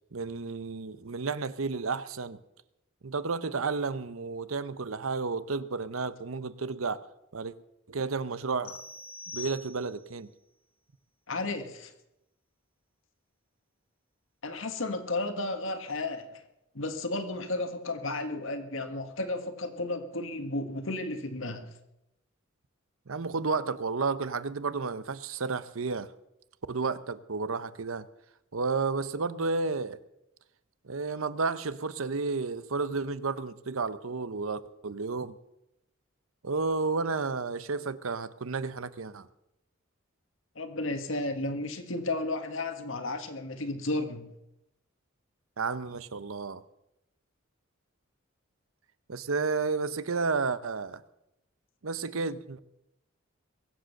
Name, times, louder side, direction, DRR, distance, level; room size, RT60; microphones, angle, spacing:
voice 1, 0.1-2.4 3.0-7.0 7.3-7.5 7.9-8.8 9.3-10.3 23.1-26.1 26.7-28.1 28.5-30.0 30.8-35.4 36.4-39.3 45.6-46.6 49.1-51.0 51.8-52.6, right 4 dB, 80° right, 0.8 m, -32 dB
sound 1, 8.6-10.2, left 3 dB, 85° left, 2.5 m, -44 dB
voice 2, 11.3-11.9 14.4-16.4 16.7-21.7 40.5-44.3, left 2 dB, 70° left, 1.7 m, -33 dB
23.0 x 7.7 x 6.6 m
head